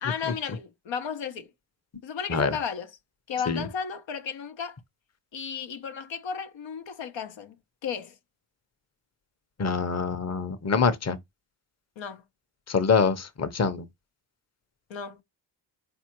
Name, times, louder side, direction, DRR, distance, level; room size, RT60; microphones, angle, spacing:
voice 1, 0.0-1.5 2.0-2.9 3.3-4.8 5.3-7.5 7.8-8.1 12.0-12.2 14.9-15.2, left 7 dB, 75° left, 0.9 m, -34 dB
voice 2, 9.6-11.2 12.7-13.9, left 5 dB, 35° left, 0.9 m, -25 dB
4.4 x 3.4 x 3.0 m
cardioid pair, 70°, 45 cm